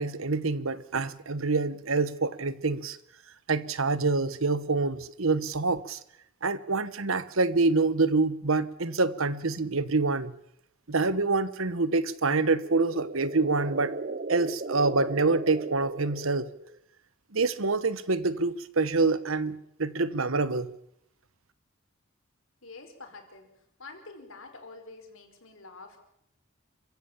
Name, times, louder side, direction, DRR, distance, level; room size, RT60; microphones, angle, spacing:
voice 1, 0.0-3.0 3.5-6.0 6.4-10.3 10.9-13.9 14.3-16.5 17.3-20.7, right 3 dB, 75° right, 15 dB, 1.2 m, -26 dB
sound 1, 12.6-16.8, right 3 dB, 45° right, 0.8 m, -37 dB
voice 2, 22.6-26.0, left 3 dB, 75° left, 5 dB, 4.7 m, -47 dB
27.5 x 15.5 x 7.4 m, 0.76 s
head